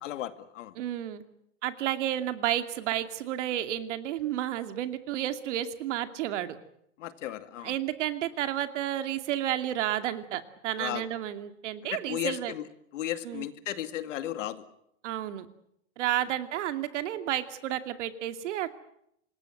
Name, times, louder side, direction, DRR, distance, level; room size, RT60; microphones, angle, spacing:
voice 1, 0.0-0.8 7.0-7.7 10.8-11.1 11.9-12.6 12.9-14.7, left 12 dB, 80° left, 10 dB, 2.3 m, -35 dB
voice 2, 0.8-1.2 1.6-6.6 7.6-12.5 13.2-13.5 15.0-15.5 16.0-18.7, right 12 dB, 70° right, 8 dB, 2.6 m, -31 dB
26.0 x 21.0 x 8.0 m, 0.76 s
supercardioid pair, 145°, 37 cm